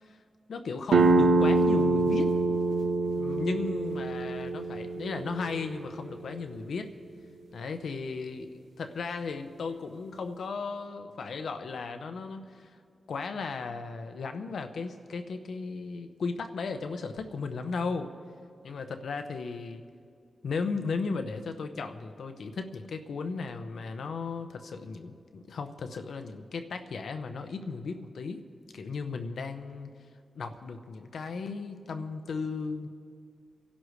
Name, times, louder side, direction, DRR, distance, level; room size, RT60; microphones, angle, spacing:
voice 1, 0.5-2.4 3.2-6.9 7.5-8.5 8.8-12.6 13.1-18.1 18.6-19.8 20.4-28.4 28.7-29.9 30.4-32.9, left 4 dB, 80° left, 7 dB, 0.9 m, -35 dB
sound 1, 0.9-6.3, right 3 dB, 85° right, 0.7 m, -25 dB
27.0 x 11.5 x 3.2 m, 2.3 s
cardioid pair, 70°, 0 cm